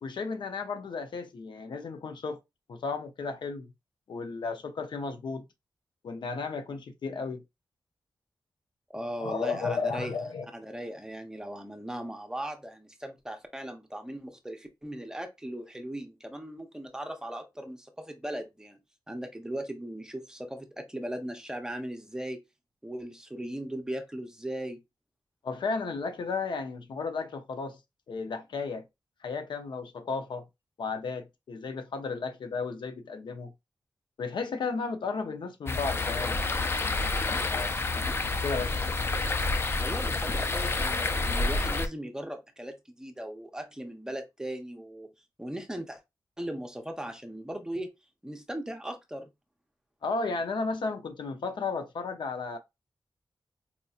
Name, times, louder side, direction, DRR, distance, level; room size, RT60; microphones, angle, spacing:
voice 1, 0.0-2.4 2.7-3.7 4.1-5.4 6.0-7.4 9.2-10.5 25.4-27.8 28.1-28.8 29.2-30.4 30.8-33.5 34.2-36.4 36.8-37.7 38.4-38.8 50.0-52.6, left 4 dB, 85° left, 0.6 m, -34 dB
voice 2, 8.9-10.2 10.5-18.8 19.1-22.4 22.8-24.8 39.8-45.1 45.4-46.0 46.4-47.9 48.2-49.3, right 1 dB, 10° right, 0.6 m, -38 dB
sound 1, 35.7-41.9, left 3 dB, 30° left, 0.4 m, -29 dB
4.3 x 2.7 x 2.3 m
wide cardioid pair, 145°, 8 cm